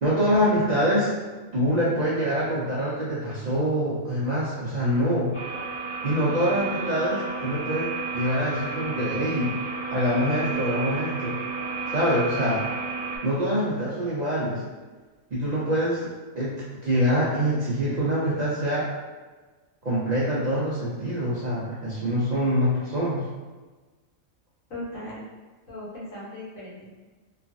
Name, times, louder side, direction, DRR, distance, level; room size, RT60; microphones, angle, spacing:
voice 1, 0.0-1.1 1.5-5.3 6.0-9.5 9.9-11.3 11.9-12.6 13.2-14.6 15.3-18.8 19.8-23.2, equal, 75° right, -8 dB, 0.3 m, -25 dB
sound 1, 5.3-13.2, right 4 dB, 55° left, 1.3 m, -32 dB
voice 2, 24.7-25.2 25.7-26.9, left 1 dB, 75° left, -8 dB, 1.5 m, -38 dB
3.1 x 2.3 x 2.5 m, 1.3 s
omnidirectional pair, 1.4 m